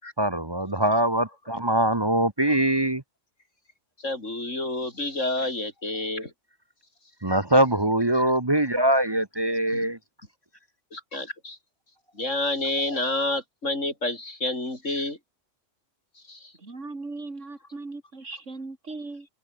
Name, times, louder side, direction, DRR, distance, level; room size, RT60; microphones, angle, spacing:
voice 1, 0.2-3.0 7.2-10.0, right 1 dB, 20° right, 1.2 m, -23 dB
voice 2, 4.0-6.3 7.3-7.4 9.7-9.8 10.9-11.6 12.1-15.2 16.3-16.5, left 2 dB, 90° left, 6.0 m, -29 dB
voice 3, 16.6-19.3, right 3 dB, 80° right, 3.9 m, -38 dB
omnidirectional pair, 1.3 m